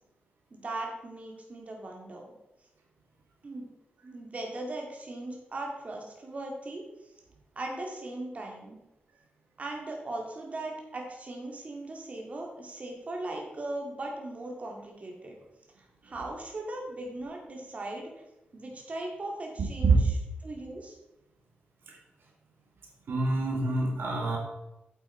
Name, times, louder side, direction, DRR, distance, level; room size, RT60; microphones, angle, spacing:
voice 1, 0.5-2.3 3.4-3.7 4.0-6.8 7.6-8.8 9.6-15.4 16.0-18.1 18.5-20.2 20.4-20.9, right 2 dB, 40° right, 0 dB, 2.1 m, -38 dB
voice 2, 23.1-24.4, right 3 dB, 80° right, 0 dB, 2.1 m, -26 dB
8.3 x 8.2 x 4.4 m, 0.94 s
wide cardioid pair, 130°, 4 cm